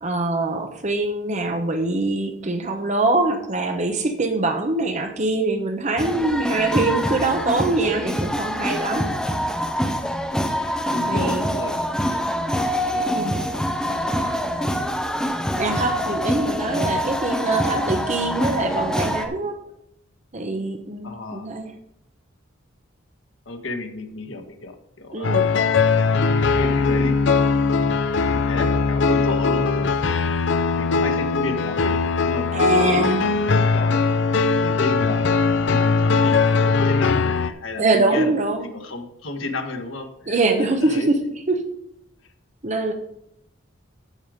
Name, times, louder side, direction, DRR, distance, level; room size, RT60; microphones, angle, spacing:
voice 1, 0.0-9.1 11.1-11.4 13.1-13.4 15.6-19.6 20.3-21.7 25.1-25.5 32.5-33.2 37.8-38.6 40.3-41.2 41.5-41.6 42.6-42.9, right 2 dB, 35° right, 6 dB, 0.9 m, -23 dB
sound 1, 6.0-19.3, equal, 5° left, 0.8 m, -25 dB
voice 2, 10.9-12.2 12.8-13.4 13.9-14.4 21.0-21.5 23.4-25.3 26.5-27.8 28.3-30.2 30.8-34.0 34.6-35.3 35.6-38.3 38.7-41.1, left 2 dB, 80° left, 5 dB, 1.5 m, -32 dB
sound 2, 25.2-37.5, left 4 dB, 65° left, 0.5 m, -20 dB
14.0 x 5.0 x 5.1 m, 0.80 s
head